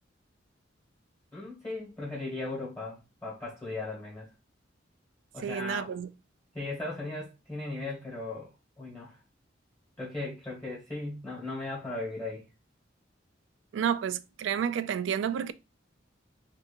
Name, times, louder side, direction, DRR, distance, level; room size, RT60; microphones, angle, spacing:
voice 1, 1.3-4.3 5.3-5.9 6.5-8.5 8.8-9.2 10.0-12.4, left 2 dB, 15° left, 1.5 m, -37 dB
voice 2, 5.4-6.1 13.7-15.5, right 8 dB, 80° right, 0.3 m, -30 dB
3.6 x 2.8 x 2.5 m
head